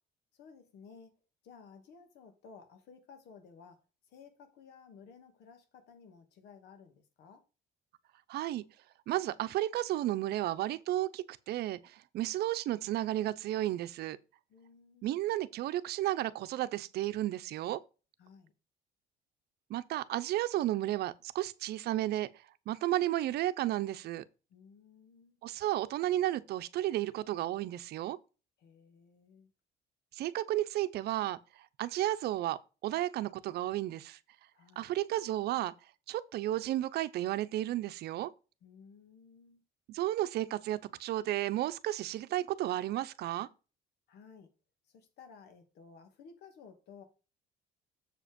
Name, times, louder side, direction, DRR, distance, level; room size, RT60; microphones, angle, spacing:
voice 1, 0.3-7.4 14.5-15.1 18.2-18.5 24.5-25.4 28.6-29.5 34.5-34.9 38.6-39.6 44.1-44.5 44.8-47.0, left 5 dB, 80° left, 2.2 m, -56 dB
voice 2, 8.3-8.6 9.1-14.2 15.0-17.8 19.7-22.3 22.7-24.2 25.4-28.2 30.1-34.2 34.8-35.7 36.1-38.3 39.9-43.5, right 14 dB, 70° right, 0.8 m, -33 dB
7.5 x 5.0 x 5.2 m
cardioid pair, 110°, 17 cm